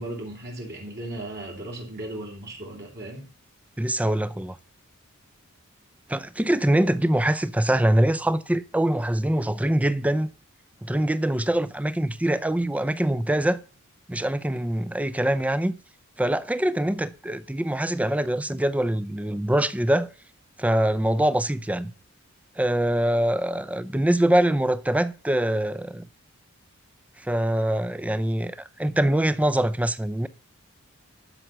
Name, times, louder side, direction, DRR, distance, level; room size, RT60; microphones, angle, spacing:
voice 1, 0.0-3.3, right 1 dB, 50° right, 3.1 m, -36 dB
voice 2, 3.8-4.6 6.1-10.3 10.8-13.6 14.1-15.8 16.2-20.1 20.6-21.9 22.6-26.1 27.2-30.3, right 1 dB, 5° right, 0.5 m, -24 dB
12.0 x 6.6 x 5.8 m
head